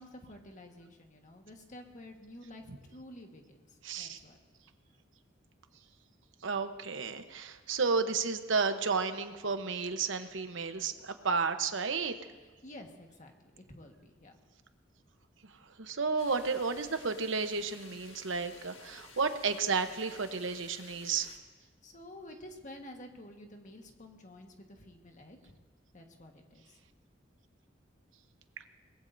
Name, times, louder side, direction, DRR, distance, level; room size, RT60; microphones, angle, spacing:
voice 1, 0.0-4.4 12.4-14.3 21.8-25.6 25.9-26.8, left 1 dB, 40° left, 3 dB, 1.6 m, -51 dB
voice 2, 3.8-4.2 6.4-12.1 15.8-21.3, right 4 dB, 80° right, 8 dB, 1.0 m, -32 dB
sound 1, 16.2-21.4, left 4 dB, 80° left, 1.8 m, -54 dB
22.5 x 20.0 x 2.7 m, 1.3 s
head